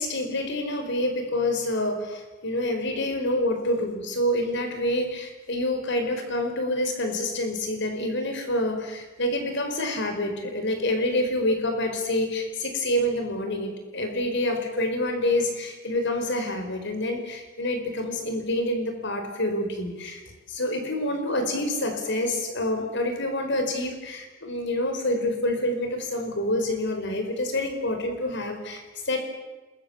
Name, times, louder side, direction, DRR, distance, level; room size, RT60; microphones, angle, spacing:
voice 1, 0.0-20.2 20.5-29.2, left 1 dB, 60° left, 6 dB, 4.8 m, -27 dB
28.0 x 21.5 x 7.2 m, 1.2 s
head